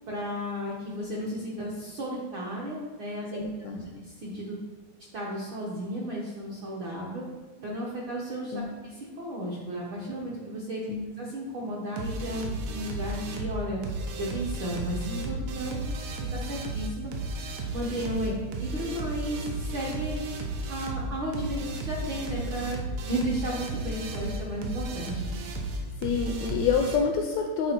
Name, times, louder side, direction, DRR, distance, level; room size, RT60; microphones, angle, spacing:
voice 1, 0.1-4.6 5.1-7.2 7.6-10.8 11.2-13.8 14.2-15.8 16.0-17.1 17.7-18.3 18.6-20.2 20.7-25.2, right 1 dB, 70° right, -4 dB, 1.1 m, -34 dB
voice 2, 3.3-3.8 8.5-8.7 10.9-11.1 18.3-18.4 25.8-27.7, left 5 dB, 80° left, 4 dB, 1.5 m, -28 dB
sound 1, 12.0-27.0, right 2 dB, 90° right, 2.4 m, -34 dB
9.3 x 3.9 x 4.3 m, 1.4 s
omnidirectional pair, 3.5 m